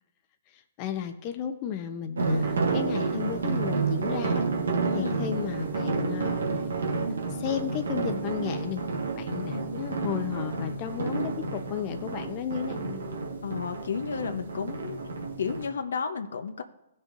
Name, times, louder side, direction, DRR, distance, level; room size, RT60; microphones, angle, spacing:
voice 1, 0.5-4.5 4.9-6.3 7.1-8.8 9.2-13.0, left 9 dB, 40° left, 7 dB, 0.9 m, -34 dB
sound 1, 2.2-15.7, right 4 dB, 75° right, 1.6 m, -30 dB
voice 2, 4.9-5.2 13.4-15.0 15.4-16.6, left 6 dB, 75° left, 7 dB, 0.9 m, -32 dB
17.0 x 6.4 x 2.6 m, 0.94 s
hypercardioid pair, 125°, 0 cm